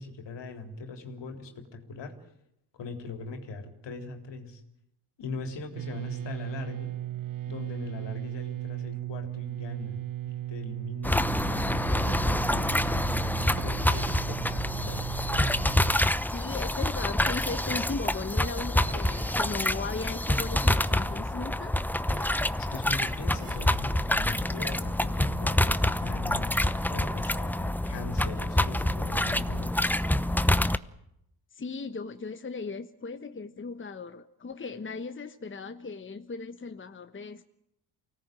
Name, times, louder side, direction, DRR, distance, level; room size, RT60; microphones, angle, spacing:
voice 1, 0.0-2.2 2.7-4.6 5.2-6.9 7.5-15.1 22.6-29.9, left 3 dB, 65° left, 5 dB, 3.7 m, -40 dB
sound 1, 5.7-16.0, right 14 dB, 45° right, 1.1 m, -36 dB
sound 2, 11.0-30.8, left 1 dB, 5° left, 0.9 m, -27 dB
sound 3, 11.8-12.4 13.4-14.4 15.3-16.0 17.3-18.0 18.8-19.5 20.4-21.1 22.0-22.5 23.3-23.8, right 7 dB, 65° right, 2.1 m, -48 dB
voice 2, 16.3-21.7 31.5-37.4, left 4 dB, 25° left, 8 dB, 1.3 m, -37 dB
24.5 x 18.0 x 9.1 m, 0.81 s
supercardioid pair, 70°, 45 cm